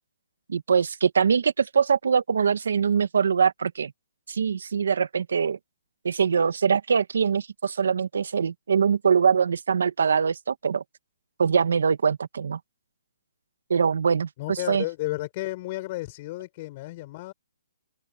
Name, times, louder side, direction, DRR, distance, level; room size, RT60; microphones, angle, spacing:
voice 1, 0.5-3.9 4.3-5.6 6.0-10.8 11.4-12.6 13.7-14.8, right 6 dB, 60° right, 1.9 m, -23 dB
voice 2, 14.4-17.3, left 19 dB, 20° left, 7.3 m, -33 dB
hypercardioid pair, 180°, 0 cm